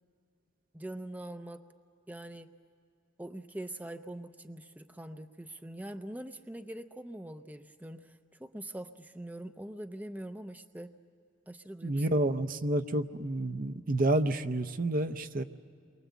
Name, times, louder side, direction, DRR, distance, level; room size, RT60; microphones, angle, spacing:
voice 1, 0.7-1.6 2.1-2.5 3.2-10.9 11.5-12.2, right 1 dB, 10° right, 8 dB, 0.6 m, -43 dB
voice 2, 11.8-15.4, right 1 dB, 45° right, 9 dB, 0.7 m, -29 dB
29.0 x 23.5 x 8.2 m, 2.4 s
head